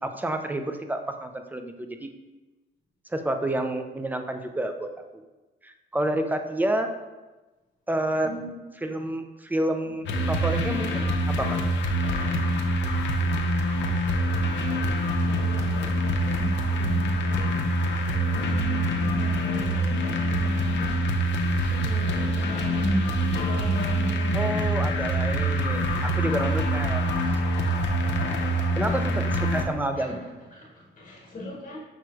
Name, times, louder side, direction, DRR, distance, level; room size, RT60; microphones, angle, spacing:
voice 1, 0.0-2.1 3.1-4.9 5.6-6.9 7.9-8.3 8.8-11.1 11.4-11.6 24.3-27.1 27.3-27.4 28.8-29.1 29.5-30.2, right 1 dB, 10° right, 6 dB, 0.3 m, -29 dB
voice 2, 8.2-8.5 9.8-10.3 15.2-17.6 18.3-24.7 29.0-29.2 29.9-31.8, equal, 40° left, -4 dB, 1.2 m, -36 dB
sound 1, 10.1-29.7, equal, 65° left, 0.6 m, -25 dB
6.0 x 3.1 x 2.3 m, 1.1 s
cardioid pair, 90°, 20 cm